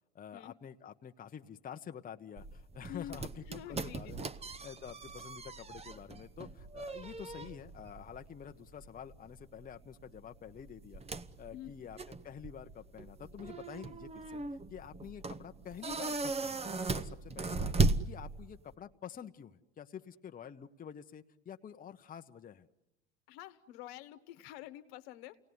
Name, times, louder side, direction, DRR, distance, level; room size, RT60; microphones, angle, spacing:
voice 1, 0.1-11.0 11.4-14.4 14.7-17.7 18.0-22.7, left 8 dB, 25° left, 7 dB, 0.9 m, -48 dB
sound 1, 2.4-18.7, right 3 dB, 20° right, 0.8 m, -38 dB
voice 2, 3.5-4.2 11.5-11.8 23.3-25.4, left 14 dB, 70° left, 10 dB, 1.2 m, -47 dB
29.0 x 18.0 x 9.5 m, 1.1 s
hypercardioid pair, 80°, 33 cm